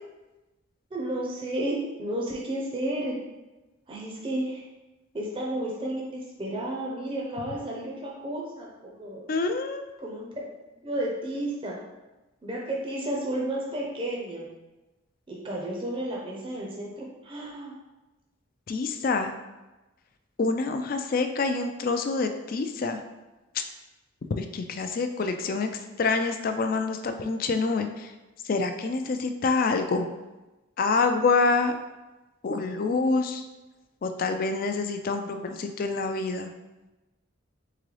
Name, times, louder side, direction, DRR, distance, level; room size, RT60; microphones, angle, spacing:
voice 1, 0.9-3.2 3.9-4.6 5.1-9.2 10.0-10.4 10.8-11.8 12.4-14.4 15.3-17.7, right 1 dB, 25° right, -3 dB, 0.6 m, -32 dB
voice 2, 9.3-9.8 18.7-19.3 20.4-23.0 24.4-25.7 26.0-28.1 28.5-30.1 30.8-31.7 32.4-33.4 34.0-36.5, left 4 dB, 45° left, 7 dB, 0.3 m, -26 dB
3.8 x 3.7 x 3.2 m, 1.1 s
head